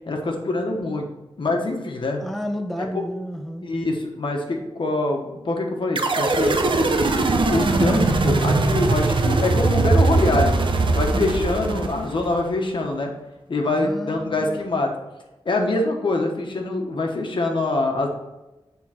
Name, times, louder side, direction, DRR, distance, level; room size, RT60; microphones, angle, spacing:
voice 1, 0.1-1.1 1.4-2.2 3.6-6.6 7.1-10.6 10.9-13.1 13.5-14.9 15.4-18.1, left 2 dB, 60° left, 2 dB, 1.3 m, -24 dB
voice 2, 2.2-3.7 13.6-14.8, equal, ahead, 4 dB, 0.5 m, -31 dB
sound 1, 6.0-12.4, right 3 dB, 60° right, 0.8 m, -20 dB
8.2 x 3.8 x 4.4 m, 1.0 s
wide cardioid pair, 110°, 9 cm